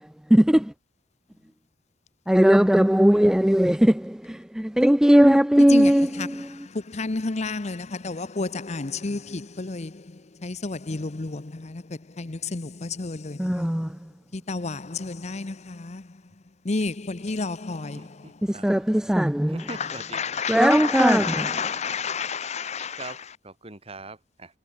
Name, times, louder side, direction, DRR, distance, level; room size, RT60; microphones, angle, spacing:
voice 1, 0.3-0.7 2.3-6.5 13.4-13.9 18.5-19.6 20.5-21.6, equal, 5° right, 0.4 m, -19 dB
voice 2, 5.7-6.5 6.9-9.9 10.4-11.8 12.2-13.7 14.3-16.0 16.7-18.1 19.7-23.3, left 4 dB, 40° left, 0.8 m, -30 dB
voice 3, 17.9-19.1 19.5-20.4 21.1-21.5 23.0-23.2 23.4-24.5, right 2 dB, 35° right, 4.6 m, -42 dB
head